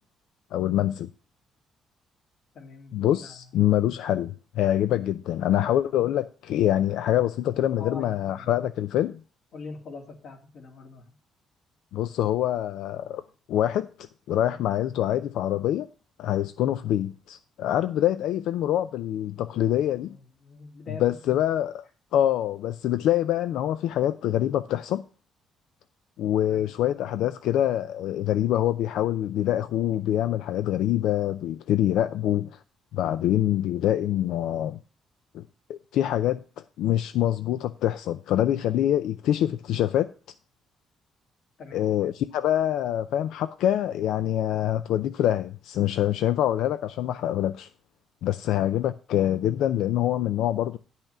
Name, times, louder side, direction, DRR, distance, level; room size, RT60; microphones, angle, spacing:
voice 1, 0.5-1.1 2.9-9.2 11.9-13.2 13.5-13.9 14.3-15.9 16.2-20.2 21.0-21.8 22.1-25.0 26.2-32.6 32.9-34.8 35.3-35.4 35.7-36.4 36.8-40.1 41.7-47.7 48.2-50.8, left 12 dB, 85° left, 0.4 m, -25 dB
voice 2, 2.5-3.4 7.7-8.6 9.5-11.1 19.9-21.5 26.5-26.8 41.6-42.0, left 4 dB, 50° left, 2.3 m, -43 dB
10.5 x 5.6 x 6.0 m
cardioid pair, 180°, 0 cm